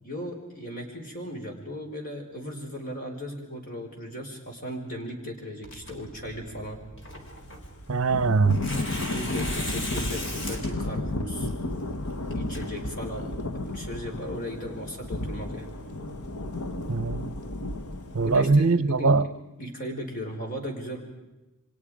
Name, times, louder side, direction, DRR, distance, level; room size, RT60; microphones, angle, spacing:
voice 1, 0.0-6.8 9.1-11.5 12.3-13.3 13.7-15.7 18.2-19.1 19.6-21.0, equal, 40° left, 2 dB, 5.0 m, -36 dB
Tearing, 5.6-13.4, left 1 dB, 55° left, 4.3 m, -39 dB
voice 2, 7.9-8.6 16.9-17.3 18.1-19.3, right 4 dB, 65° right, 15 dB, 0.7 m, -22 dB
Thunder / Rain, 8.1-18.6, left 2 dB, 85° left, 1.3 m, -33 dB
29.5 x 24.5 x 5.1 m, 1.0 s
head